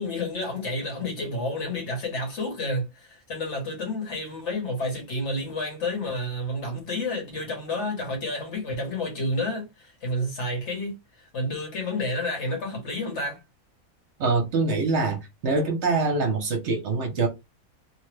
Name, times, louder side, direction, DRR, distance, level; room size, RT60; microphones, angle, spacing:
voice 1, 0.0-10.9 11.3-13.4, left 1 dB, 55° left, 1.3 m, -30 dB
voice 2, 14.2-17.3, right 3 dB, 60° right, 0.9 m, -24 dB
2.9 x 2.1 x 3.1 m
omnidirectional pair, 1.5 m